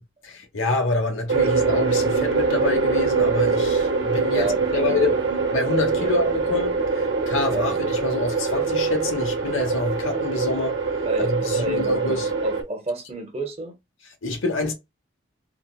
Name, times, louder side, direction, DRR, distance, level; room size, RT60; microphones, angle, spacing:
voice 1, 0.2-5.2 5.5-10.8 11.2-12.3 14.2-14.7, left 3 dB, 85° left, 1.0 m, -27 dB
sound 1, 1.3-12.6, right 4 dB, 65° right, 0.8 m, -23 dB
voice 2, 4.3-5.0 6.0-6.1 7.5-7.7 11.0-11.9 12.4-13.7, right 1 dB, 30° right, 0.8 m, -30 dB
3.9 x 2.1 x 2.3 m
head